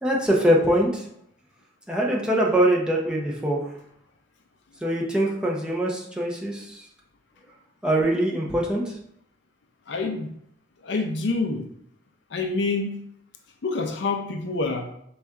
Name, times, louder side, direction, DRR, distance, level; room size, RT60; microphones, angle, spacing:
voice 1, 0.0-1.0 1.9-3.6 4.8-6.8 7.8-8.9, right 1 dB, 5° right, -3 dB, 0.6 m, -23 dB
voice 2, 9.9-10.3 10.8-11.6 12.3-13.0 13.6-14.9, left 3 dB, 65° left, 4 dB, 0.5 m, -27 dB
4.1 x 2.4 x 3.5 m, 0.72 s
head